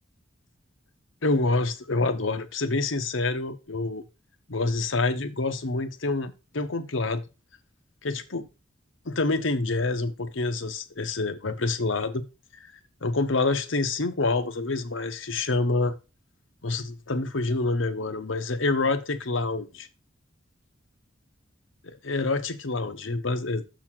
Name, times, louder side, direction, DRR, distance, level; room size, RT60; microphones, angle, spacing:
voice 1, 1.2-4.0 4.5-7.2 8.0-8.5 9.1-12.2 13.0-15.9 16.6-19.9 21.8-23.6, left 3 dB, 90° left, 1.1 m, -27 dB
6.9 x 4.2 x 6.1 m
head